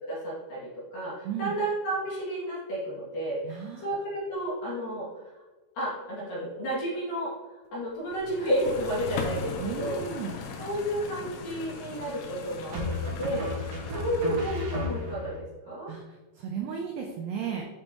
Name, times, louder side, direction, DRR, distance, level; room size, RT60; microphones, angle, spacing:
voice 1, 0.0-5.1 5.7-7.3 7.7-9.5 9.8-10.0 10.6-15.9, right 1 dB, 50° left, -8 dB, 3.4 m, -32 dB
voice 2, 1.2-1.6 3.4-3.9 9.6-10.4 15.9-16.0 16.4-17.6, right 7 dB, 85° right, 1 dB, 2.3 m, -34 dB
sound 1, 8.1-15.1, left 5 dB, 75° left, 3.0 m, -39 dB
sound 2, 10.1-10.7 12.7-15.4, left 2 dB, 60° right, 1.6 m, -34 dB
8.6 x 5.4 x 3.0 m, 1.2 s
omnidirectional pair, 5.8 m